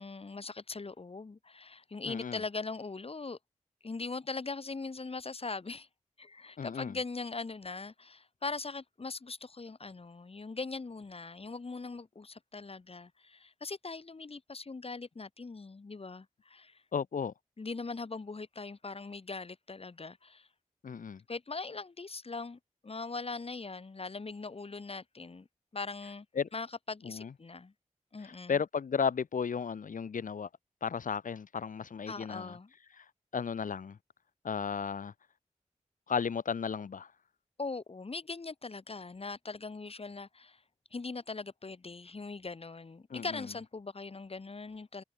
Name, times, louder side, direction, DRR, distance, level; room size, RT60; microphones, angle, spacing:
voice 1, 0.0-3.4 3.8-5.9 6.2-16.8 17.6-20.5 21.3-25.5 25.7-26.2 26.5-27.7 28.1-28.6 32.1-32.7 37.6-40.6 40.9-45.0, left 3 dB, 50° left, 1.7 m, -41 dB
voice 2, 2.1-2.4 6.6-7.0 16.9-17.3 20.8-21.2 26.3-26.5 27.0-27.3 28.2-30.5 30.8-32.6 33.0-33.1 33.3-34.0 34.4-35.1 36.1-37.1 43.1-43.5, left 6 dB, 85° left, 2.5 m, -34 dB
cardioid pair, 40°, 13 cm